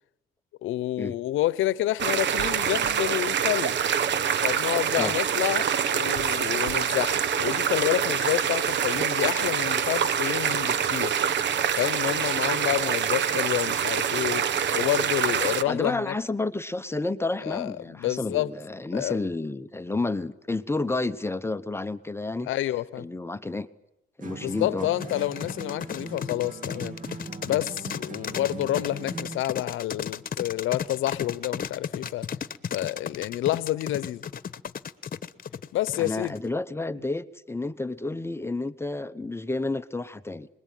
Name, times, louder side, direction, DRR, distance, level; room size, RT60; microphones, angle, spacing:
voice 1, 0.6-3.8 4.4-11.1 11.8-14.5 14.7-16.1 17.4-18.5 18.9-19.2 22.5-23.1 24.4-26.9 27.4-32.3 32.7-34.2 35.7-36.3, left 14 dB, 85° left, 0.9 m, -28 dB
sound 1, 2.0-15.6, right 8 dB, 65° right, 1.2 m, -25 dB
voice 2, 15.6-22.5 23.0-23.7 24.2-24.9 36.0-40.5, left 2 dB, 10° left, 0.9 m, -30 dB
sound 2, 24.2-29.5, right 3 dB, 40° right, 2.3 m, -40 dB
sound 3, 25.0-36.5, left 7 dB, 45° left, 1.2 m, -34 dB
27.0 x 21.0 x 9.2 m
cardioid pair, 90°, 20 cm